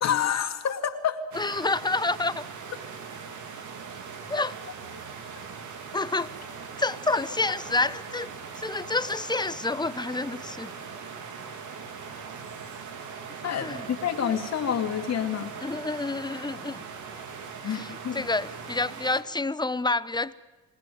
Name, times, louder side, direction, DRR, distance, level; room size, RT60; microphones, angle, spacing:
voice 1, 0.0-1.2 13.4-15.5 17.6-18.2, left 8 dB, 60° left, 2.3 m, -28 dB
voice 2, 1.3-2.4 4.3-4.5 5.9-6.3 6.8-8.3 8.6-10.7 13.6-13.9 15.6-16.9 17.6-20.3, left 3 dB, 15° left, 0.8 m, -28 dB
sound 1, 1.3-19.2, right 5 dB, 75° right, 3.0 m, -40 dB
26.0 x 18.5 x 9.3 m
cardioid pair, 90°, 30 cm